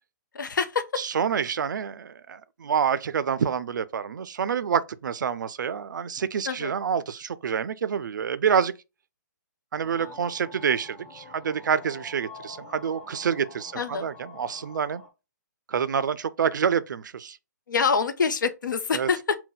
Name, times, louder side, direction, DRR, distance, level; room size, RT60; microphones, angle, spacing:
voice 1, 0.3-0.8 6.5-6.7 10.0-10.1 13.7-14.1 17.7-19.4, left 5 dB, 85° left, 0.7 m, -26 dB
voice 2, 1.0-8.7 9.7-15.0 15.7-17.4 18.9-19.1, right 7 dB, 80° right, 0.4 m, -27 dB
sound 1, 9.7-15.1, left 3 dB, 5° left, 0.6 m, -46 dB
4.0 x 2.2 x 3.7 m
hypercardioid pair, 155°, 10 cm